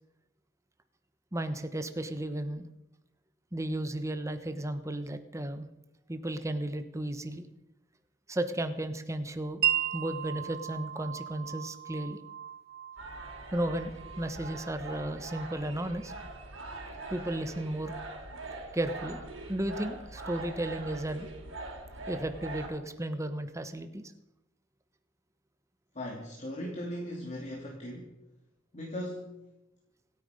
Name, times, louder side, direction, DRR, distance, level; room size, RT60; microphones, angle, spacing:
voice 1, 1.3-2.7 3.5-5.7 6.1-7.5 8.3-12.2 13.5-16.1 17.1-17.9 18.7-19.2 19.5-21.3 22.1-24.1, right 1 dB, 15° right, 9 dB, 1.0 m, -34 dB
Wind chime, 9.6-17.3, right 11 dB, 55° right, 0.8 m, -37 dB
sound 1, 13.0-22.7, right 2 dB, 80° right, 3.7 m, -43 dB
voice 2, 25.9-28.1 28.7-29.3, equal, 35° left, -1 dB, 2.5 m, -38 dB
26.5 x 9.4 x 5.1 m, 0.92 s
head